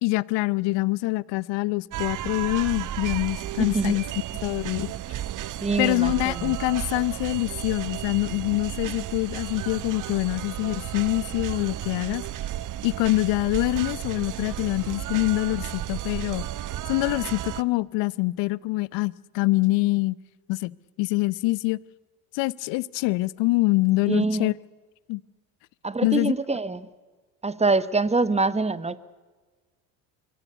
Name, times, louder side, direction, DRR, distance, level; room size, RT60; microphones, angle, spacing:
voice 1, 0.0-4.0 4.4-4.9 5.8-12.2 12.8-16.5 16.9-20.1 20.5-21.8 22.3-24.5 25.1-25.2 26.0-26.3, left 21 dB, 60° left, 23 dB, 0.8 m, -25 dB
sound 1, 1.9-17.6, right 13 dB, 40° right, 0.8 m, -33 dB
voice 2, 3.6-3.9 5.6-6.6 24.1-24.5 25.8-26.9 27.4-29.0, right 3 dB, 15° right, 17 dB, 1.2 m, -25 dB
24.0 x 17.5 x 8.2 m, 1.3 s
hypercardioid pair, 75°, 48 cm